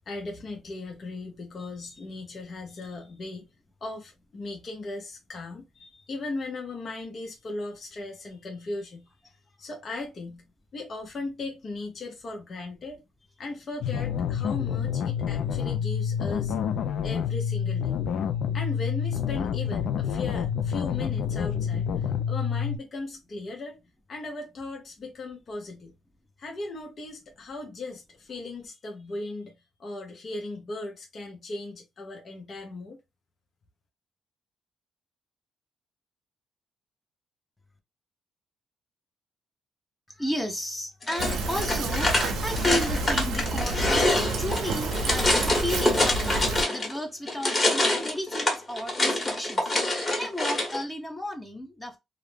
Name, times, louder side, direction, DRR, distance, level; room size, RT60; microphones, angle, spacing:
voice 1, 0.1-3.5 3.8-9.1 9.6-10.4 10.7-13.0 13.4-16.5 17.0-17.9 18.5-23.8 24.1-25.9 26.4-29.5 29.8-33.0, left 2 dB, 45° left, 0.7 m, -37 dB
sound 1, 13.8-22.8, left 8 dB, 75° left, 0.4 m, -28 dB
voice 2, 40.1-52.0, left 1 dB, 10° left, 0.7 m, -33 dB
sound 2, 41.0-47.0 47.3-50.8, left 1 dB, 25° left, 1.2 m, -26 dB
Fill (with liquid), 41.2-46.6, right 2 dB, 85° right, 0.6 m, -29 dB
2.4 x 2.0 x 3.1 m
cardioid pair, 90°, 0 cm